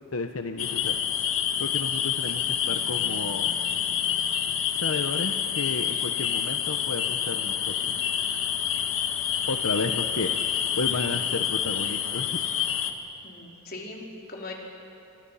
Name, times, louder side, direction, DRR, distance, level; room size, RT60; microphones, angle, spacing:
voice 1, 0.1-1.0 1.6-3.6 4.8-7.9 9.5-10.3 10.7-12.4, left 3 dB, 90° left, 6 dB, 1.0 m, -32 dB
sound 1, 0.6-12.9, left 9 dB, 70° left, 1.6 m, -28 dB
voice 2, 13.2-14.5, left 2 dB, 45° left, -1 dB, 4.0 m, -40 dB
29.0 x 25.5 x 5.7 m, 2.6 s
head